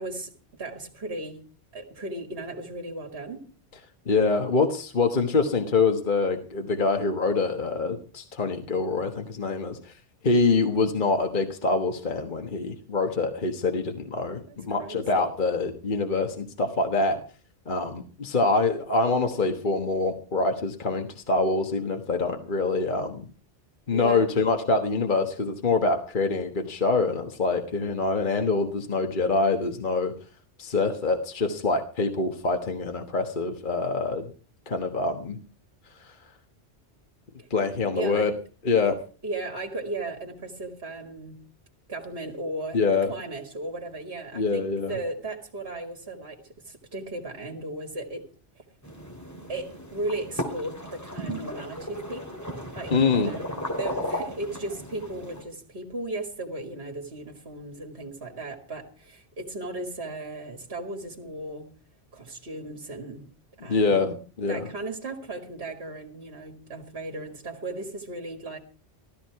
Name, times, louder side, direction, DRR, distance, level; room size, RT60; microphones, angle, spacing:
voice 1, 0.0-3.5 14.5-15.3 23.9-24.3 37.4-37.5 37.9-38.3 39.2-41.5 41.9-42.8 43.1-48.2 48.6-48.7 49.5-52.4 52.7-53.5 53.8-61.8 62.1-63.3 63.6-64.1 64.5-68.6, right 2 dB, 60° right, 2.2 m, -36 dB
voice 2, 4.1-9.9 10.2-17.2 17.7-23.3 23.9-30.1 30.6-34.3 34.7-35.4 36.0-36.1 37.5-38.3 38.6-38.9 42.7-43.1 44.3-45.0 52.9-53.3 63.7-64.7, left 3 dB, 45° left, 1.5 m, -25 dB
sound 1, 48.8-55.4, equal, 15° left, 3.5 m, -35 dB
15.0 x 14.0 x 4.7 m
omnidirectional pair, 1.2 m